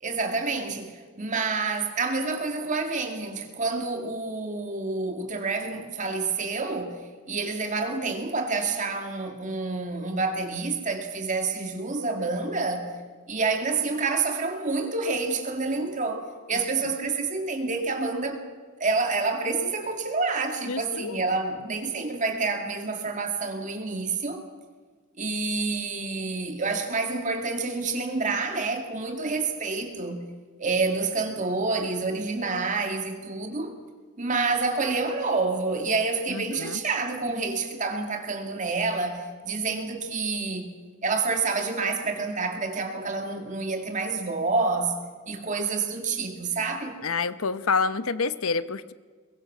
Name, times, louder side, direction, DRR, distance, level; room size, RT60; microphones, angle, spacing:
voice 1, 0.0-7.0 7.3-13.0 13.3-18.4 18.8-24.4 25.2-30.3 30.6-33.7 34.2-40.7 41.0-45.0 45.3-47.0, right 3 dB, 35° right, 2.3 m, -28 dB
voice 2, 20.7-21.2 36.3-36.8 47.0-48.9, left 4 dB, 90° left, 0.9 m, -28 dB
23.5 x 22.0 x 6.2 m
head